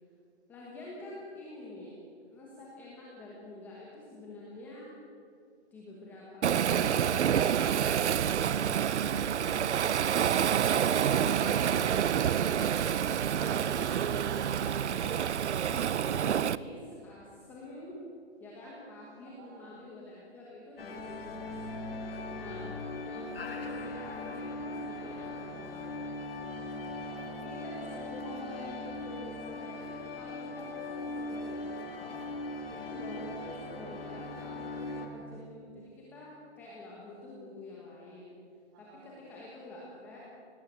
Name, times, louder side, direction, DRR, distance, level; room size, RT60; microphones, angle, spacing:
voice 1, 0.5-2.0 2.3-5.0 5.7-7.5 8.2-13.1 13.6-18.0 18.4-22.7 23.0-26.0 27.4-32.2 32.7-38.4 38.8-40.2, left 1 dB, 5° left, -5 dB, 1.2 m, -47 dB
Waves surf, 6.4-16.6, right 9 dB, 80° right, 0.7 m, -28 dB
voice 2, 19.4-19.8 26.4-27.4 38.7-39.1, right 4 dB, 15° right, 3 dB, 1.9 m, -56 dB
sound 1, 20.8-35.1, left 2 dB, 55° left, 2.5 m, -39 dB
18.0 x 17.5 x 8.1 m, 2.3 s
hypercardioid pair, 180°, 34 cm